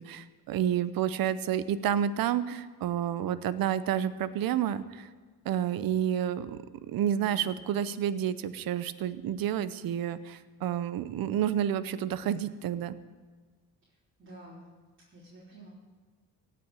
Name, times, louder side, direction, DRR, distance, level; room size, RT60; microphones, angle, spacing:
voice 1, 0.0-5.1 5.4-6.6 6.9-13.0, right 10 dB, 65° right, 14 dB, 0.8 m, -30 dB
voice 2, 7.2-7.6 13.8-13.9 14.2-14.7 15.1-15.7, right 1 dB, 30° right, -7 dB, 3.8 m, -50 dB
16.5 x 6.0 x 9.0 m, 1.4 s
cardioid pair, 115°, 38 cm